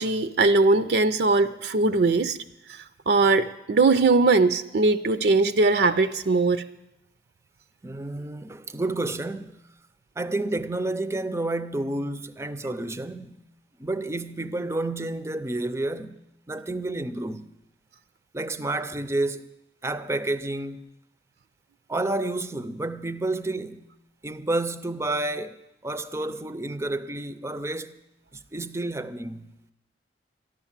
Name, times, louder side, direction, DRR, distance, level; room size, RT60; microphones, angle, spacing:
voice 1, 0.0-2.4 3.1-6.6, right 3 dB, 60° right, 0.5 m, -20 dB
voice 2, 7.8-9.6 10.2-13.4 13.8-16.2 16.5-17.5 18.3-19.5 19.8-20.9 21.9-23.9 24.2-28.0 28.3-29.5, right 2 dB, 15° right, 0.5 m, -30 dB
13.5 x 11.0 x 7.3 m
head